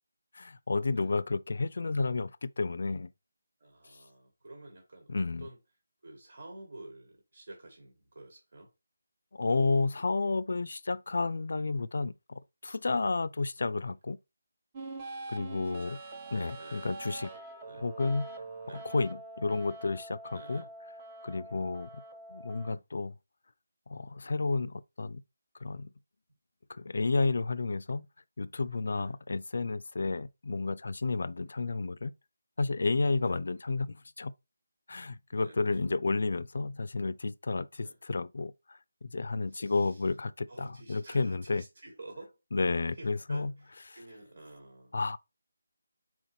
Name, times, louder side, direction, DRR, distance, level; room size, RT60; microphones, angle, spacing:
voice 1, 0.3-3.1 5.1-5.5 9.3-14.2 15.3-16.0 16.3-17.3 17.8-18.2 18.9-20.6 21.2-22.0 22.3-23.1 23.9-25.2 25.6-25.9 26.7-28.1 28.4-32.1 32.6-34.3 34.9-41.6 42.5-43.5 44.9-45.2, left 3 dB, 65° left, 0.4 m, -31 dB
voice 2, 0.9-1.2 3.6-5.6 6.0-8.7 12.8-13.2 15.6-16.0 16.4-16.9 17.7-17.9 18.6-18.9 20.3-20.7 21.4-21.7 28.9-29.2 33.2-33.4 35.3-35.9 37.8-38.0 39.5-40.1 40.5-42.4 42.6-45.0, right 2 dB, 60° right, 1.5 m, -51 dB
sound 1, 14.7-22.7, right 2 dB, 25° right, 0.7 m, -44 dB
4.4 x 4.0 x 2.7 m
figure-of-eight pair, 165°, 0 cm